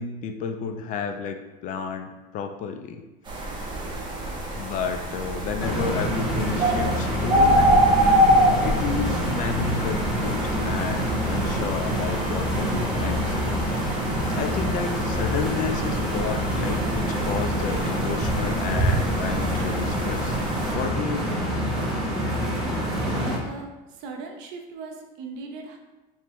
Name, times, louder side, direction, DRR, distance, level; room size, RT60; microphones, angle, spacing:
voice 1, 0.0-3.0 4.5-7.8 8.5-13.3 14.3-20.4 20.7-21.5, left 6 dB, 40° left, 6 dB, 0.4 m, -31 dB
sound 1, 3.3-20.7, right 1 dB, 25° right, 1.0 m, -26 dB
sound 2, 5.6-23.4, equal, ahead, 1.1 m, -26 dB
voice 2, 22.5-25.8, right 3 dB, 60° right, 3 dB, 0.8 m, -39 dB
3.3 x 3.1 x 4.1 m, 1.1 s
supercardioid pair, 130°, 19 cm